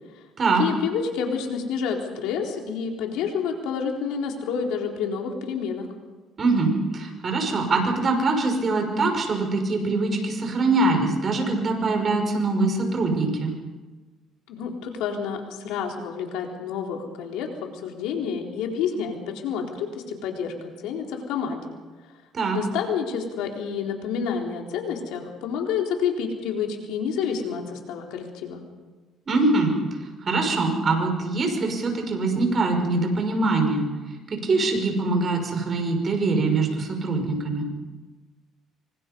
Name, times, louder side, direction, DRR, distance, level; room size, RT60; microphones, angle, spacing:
voice 1, 0.6-5.9 14.5-17.5 17.7-21.6 22.5-28.6, left 6 dB, 85° left, 1 dB, 4.1 m, -29 dB
voice 2, 6.4-13.5 22.3-22.6 29.3-29.7 30.0-33.9 34.3-37.7, right 3 dB, 35° right, 3 dB, 6.0 m, -23 dB
25.5 x 25.0 x 5.5 m, 1.3 s
cardioid pair, 115°, 0 cm